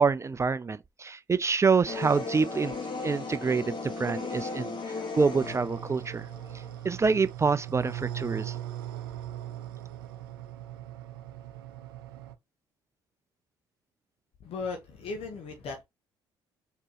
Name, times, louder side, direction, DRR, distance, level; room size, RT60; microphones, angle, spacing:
voice 1, 0.0-2.7 3.0-4.8 5.1-6.3 6.8-8.6, right 5 dB, 25° right, 0.4 m, -26 dB
sound 1, 1.9-6.8, left 3 dB, 40° left, 1.7 m, -37 dB
sound 2, 5.4-12.4, right 12 dB, 85° right, 0.5 m, -39 dB
voice 2, 14.4-15.8, left 4 dB, 55° left, 1.0 m, -37 dB
4.4 x 3.0 x 3.0 m
hypercardioid pair, 55°, 12 cm